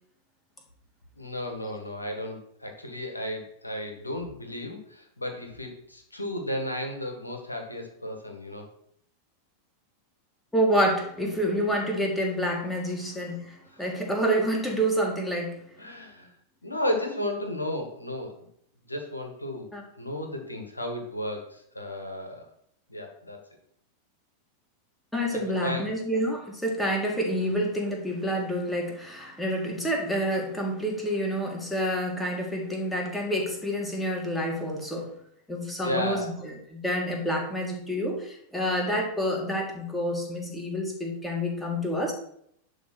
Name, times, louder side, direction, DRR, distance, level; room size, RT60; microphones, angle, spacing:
voice 1, 1.1-8.7 13.7-13.8 15.8-16.4 16.6-18.5 18.9-19.7 20.0-22.5 22.9-23.4 25.3-25.9 27.4-27.6 35.8-36.4, left 1 dB, 85° left, 4 dB, 1.8 m, -34 dB
voice 2, 10.5-15.6 19.7-19.8 25.1-35.1 35.5-36.3 36.7-42.1, equal, 5° left, 0 dB, 2.2 m, -28 dB
11.0 x 3.7 x 6.2 m, 0.69 s
figure-of-eight pair, 90°, 0 cm